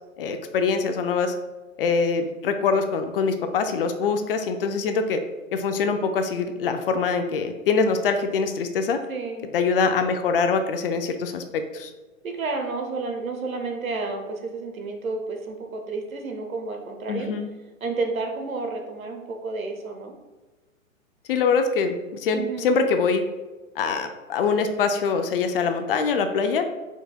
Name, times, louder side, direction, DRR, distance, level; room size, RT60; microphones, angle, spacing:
voice 1, 0.2-1.3 1.8-5.2 5.5-9.0 9.5-11.9 17.1-17.5 21.3-23.2 23.8-26.6, left 5 dB, 45° left, 7 dB, 0.5 m, -24 dB
voice 2, 9.1-9.5 12.2-17.3 17.8-20.1 22.3-22.7, right 3 dB, 85° right, 4 dB, 0.9 m, -31 dB
4.5 x 3.9 x 2.2 m, 1.2 s
hypercardioid pair, 125°, 40 cm